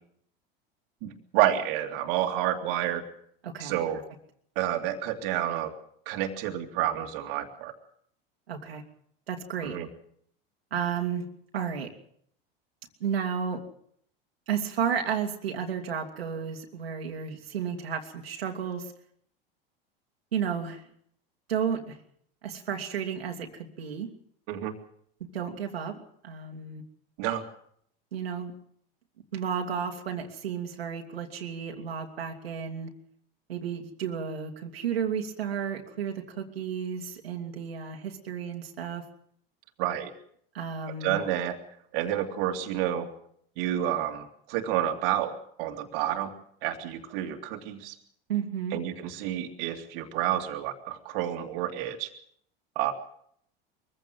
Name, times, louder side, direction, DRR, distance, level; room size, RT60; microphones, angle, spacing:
voice 1, 1.0-3.0 3.6-4.0 4.6-5.7 6.1-7.7 9.6-9.9 24.5-24.7 27.2-27.4 39.8-40.1 41.0-41.6 41.9-43.1 43.6-45.3 45.6-46.3 46.6-47.9 48.7-52.1 52.8-52.9, right 11 dB, 65° right, 4 dB, 2.5 m, -29 dB
voice 2, 8.5-8.8 9.3-9.8 10.7-11.3 11.5-11.9 13.0-13.6 14.5-18.9 20.3-20.8 21.5-22.0 22.4-24.1 25.3-26.8 28.1-28.5 29.3-32.9 33.5-39.0 40.5-41.2 48.3-48.8, right 7 dB, 90° right, 2 dB, 2.5 m, -32 dB
22.5 x 15.5 x 7.7 m, 0.68 s
hypercardioid pair, 95°, 29 cm